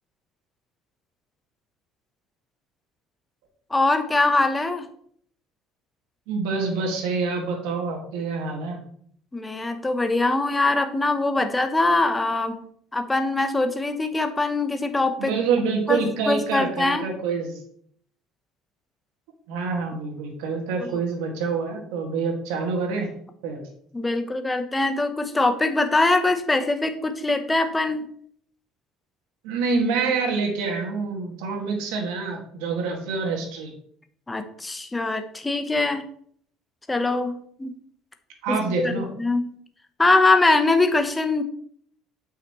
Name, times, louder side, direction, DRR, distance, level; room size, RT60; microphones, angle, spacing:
voice 1, 3.7-4.9 9.3-12.5 12.9-15.3 15.9-17.0 20.8-20.9 23.9-28.1 34.3-36.0 36.9-37.7 38.5-39.5 40.0-41.4, left 2 dB, 15° left, 8 dB, 0.9 m, -22 dB
voice 2, 6.3-8.8 15.2-17.6 19.5-23.1 23.4-23.6 29.4-33.7 38.4-39.1, right 4 dB, 90° right, 2 dB, 1.9 m, -26 dB
8.0 x 5.8 x 3.1 m, 0.62 s
cardioid pair, 115°, 0 cm